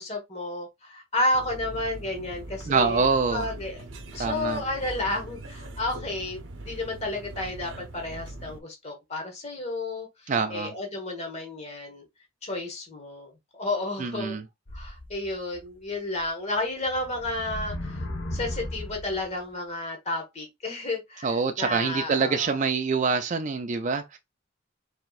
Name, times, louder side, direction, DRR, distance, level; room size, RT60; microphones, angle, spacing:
voice 1, 0.0-3.8 4.1-12.0 12.4-14.4 14.7-18.0 18.3-22.6, left 2 dB, 35° left, 1.6 m, -32 dB
sound 1, 1.3-8.6, right 2 dB, 80° right, 0.9 m, -41 dB
voice 2, 2.7-3.5 4.2-4.6 10.3-10.7 14.0-14.4 21.2-24.2, right 5 dB, 40° right, 0.4 m, -25 dB
sound 2, 14.7-15.6 16.2-16.3 16.9-19.3, left 1 dB, 70° left, 1.1 m, -36 dB
4.9 x 3.6 x 2.5 m
head